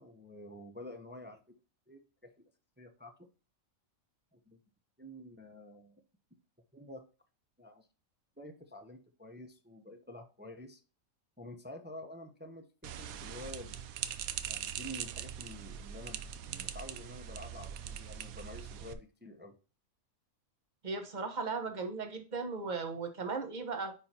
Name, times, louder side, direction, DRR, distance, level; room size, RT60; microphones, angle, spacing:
voice 1, 0.0-1.4 1.9-2.4 2.8-3.3 4.3-4.6 5.0-5.9 6.7-7.0 7.6-7.9 8.4-10.8 11.4-13.8 14.4-19.5, left 1 dB, 10° right, 5 dB, 0.6 m, -49 dB
sound 1, 12.8-18.9, right 9 dB, 90° right, 1.1 m, -42 dB
voice 2, 20.8-23.9, right 4 dB, 35° right, 6 dB, 1.2 m, -37 dB
9.5 x 4.3 x 2.9 m, 0.34 s
omnidirectional pair, 1.4 m